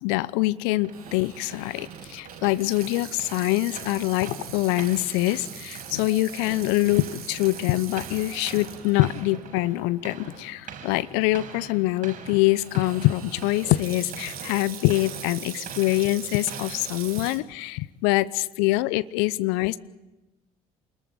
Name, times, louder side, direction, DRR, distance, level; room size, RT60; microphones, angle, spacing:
voice 1, 0.0-19.8, left 18 dB, 70° left, 18 dB, 0.9 m, -24 dB
sound 1, 0.8-17.6, right 6 dB, 45° right, 7.0 m, -44 dB
Water tap faucet / Sink (filling or washing), 0.9-9.3 9.8-9.9 10.6-10.9 12.5-17.4, right 8 dB, 85° right, 2.4 m, -41 dB
Yell, 3.2-11.0, right 3 dB, 15° right, 7.8 m, -56 dB
29.0 x 21.0 x 8.9 m, 1.1 s
hypercardioid pair, 55°, 19 cm